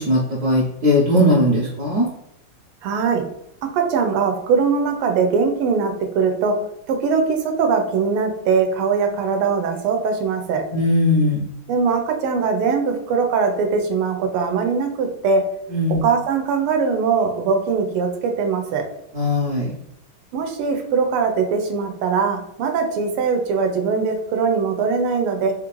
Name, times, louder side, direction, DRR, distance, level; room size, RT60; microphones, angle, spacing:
voice 1, 0.0-2.1 10.7-11.5 15.7-16.0 19.1-19.7, left 1 dB, 60° right, -6 dB, 1.1 m, -19 dB
voice 2, 2.8-3.2 3.6-6.5 6.9-10.6 11.7-15.4 16.0-18.8 20.3-25.5, right 5 dB, 85° right, 4 dB, 1.6 m, -21 dB
3.8 x 2.5 x 3.0 m, 0.81 s
omnidirectional pair, 2.4 m